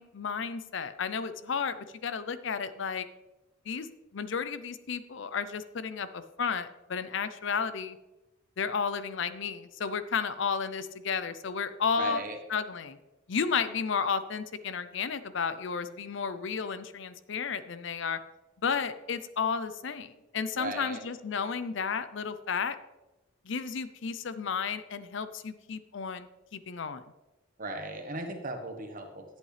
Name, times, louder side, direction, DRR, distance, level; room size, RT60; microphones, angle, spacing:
voice 1, 0.0-1.8 2.0-3.0 3.7-8.0 8.6-12.2 12.5-13.0 13.3-18.2 18.6-22.8 23.4-27.0, left 6 dB, 60° left, 13 dB, 0.5 m, -32 dB
voice 2, 12.0-12.4 20.5-21.0 27.6-29.2, right 2 dB, 40° right, 4 dB, 1.2 m, -37 dB
11.0 x 8.2 x 3.3 m, 1.1 s
head